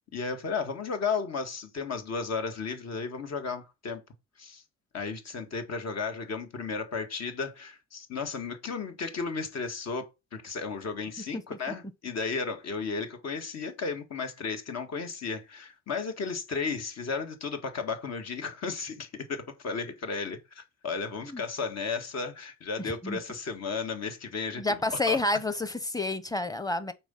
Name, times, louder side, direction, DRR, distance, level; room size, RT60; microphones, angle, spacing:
voice 1, 0.1-4.0 4.4-4.6 4.9-10.0 10.3-24.8 25.1-25.2, left 5 dB, 60° left, 2.1 m, -34 dB
voice 2, 22.8-23.2 24.6-26.9, left 2 dB, 10° left, 1.0 m, -29 dB
6.1 x 4.5 x 5.6 m
cardioid pair, 90°, 30 cm